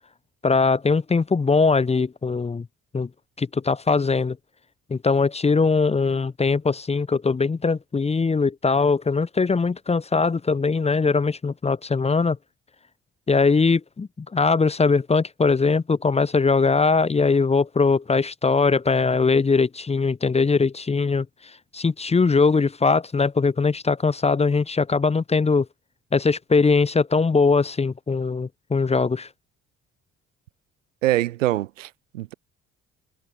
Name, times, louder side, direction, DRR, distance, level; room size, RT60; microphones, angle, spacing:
voice 1, 0.4-2.7 2.9-3.1 3.4-4.4 4.9-12.4 13.3-21.3 21.7-25.7 26.1-29.3, left 4 dB, 15° left, 0.7 m, -21 dB
voice 2, 31.0-32.3, right 15 dB, 80° right, 0.6 m, -24 dB
figure-of-eight pair, 40°, 38 cm